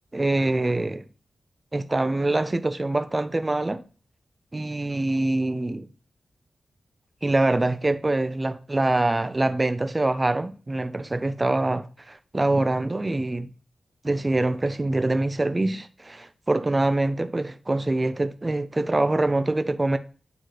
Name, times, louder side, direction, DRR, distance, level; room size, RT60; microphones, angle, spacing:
voice 1, 0.1-1.1 1.7-3.8 4.5-5.9 7.2-13.5 14.0-20.0, right 2 dB, 20° right, 0.5 m, -24 dB
9.2 x 3.2 x 3.8 m
wide cardioid pair, 115°, 0 cm